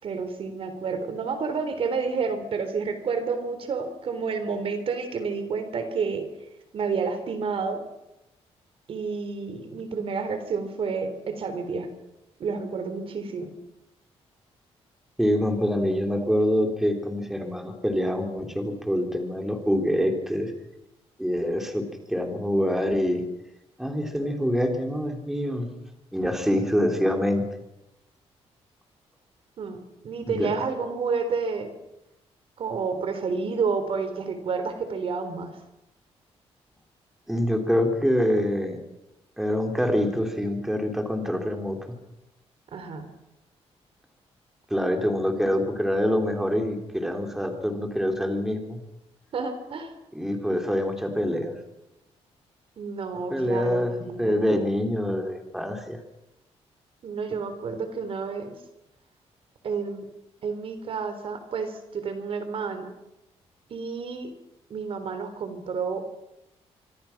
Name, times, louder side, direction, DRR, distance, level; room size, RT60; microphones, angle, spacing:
voice 1, 0.0-6.3 6.7-7.8 8.9-11.9 12.4-13.5 29.6-29.8 30.0-31.7 32.6-35.5 42.7-43.1 49.3-49.9 52.8-54.4 57.0-58.5 59.6-60.1 60.4-62.9 63.7-64.3 64.7-66.1, right 5 dB, 55° right, 9 dB, 3.7 m, -30 dB
voice 2, 15.2-20.5 21.2-23.2 23.8-25.7 26.1-27.4 30.3-30.5 37.3-38.8 39.4-41.8 44.7-48.8 50.1-51.5 53.3-56.0, equal, 5° right, 4 dB, 3.7 m, -25 dB
26.0 x 25.5 x 6.0 m, 0.90 s
cardioid pair, 125°, 11 cm